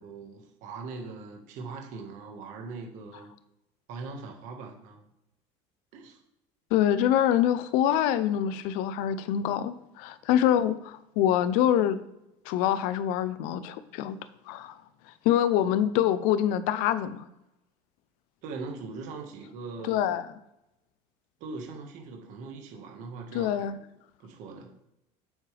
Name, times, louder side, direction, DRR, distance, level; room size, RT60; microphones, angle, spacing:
voice 1, 0.0-3.3 3.9-5.0 5.9-6.2 18.4-20.2 21.4-23.8 24.2-24.7, right 4 dB, 55° right, 1.6 m, -41 dB
voice 2, 6.7-12.0 12.5-14.2 14.5-14.8 15.2-17.3 19.8-20.3 23.3-23.8, left 10 dB, 60° left, 0.6 m, -25 dB
8.5 x 7.3 x 3.4 m
cardioid pair, 175°, 16 cm